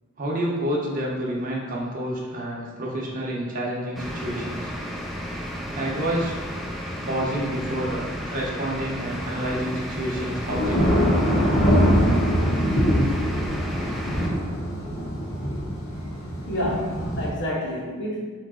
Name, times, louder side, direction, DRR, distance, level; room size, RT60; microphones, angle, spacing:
voice 1, 0.2-4.7 5.7-6.4 7.0-8.0 8.3-11.2, right 1 dB, 40° right, -4 dB, 0.8 m, -29 dB
sound 1, 4.0-14.3, equal, ahead, 0.4 m, -33 dB
Thunder / Rain, 9.0-17.3, equal, 85° left, 1.5 m, -23 dB
voice 2, 16.4-18.2, equal, 55° left, -2 dB, 0.9 m, -28 dB
3.7 x 3.2 x 3.7 m, 1.5 s
head